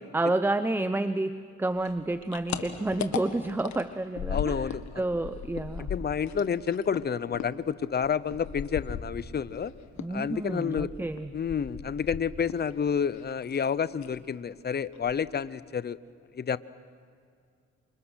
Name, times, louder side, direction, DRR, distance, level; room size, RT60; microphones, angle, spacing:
voice 1, 0.1-4.6 5.0-5.9 10.0-11.3, right 2 dB, 5° right, 12 dB, 0.7 m, -29 dB
sound 1, 1.8-4.9 5.1-9.6 10.0-12.7 13.0-13.7 14.0-14.2 14.6-14.7 14.9-15.5, left 8 dB, 65° left, 1.9 m, -37 dB
voice 2, 4.3-5.0 5.9-9.7 10.1-10.9 11.3-16.0 16.3-16.6, left 7 dB, 35° left, 16 dB, 0.8 m, -29 dB
28.0 x 26.5 x 6.4 m, 2.3 s
cardioid pair, 90°, 30 cm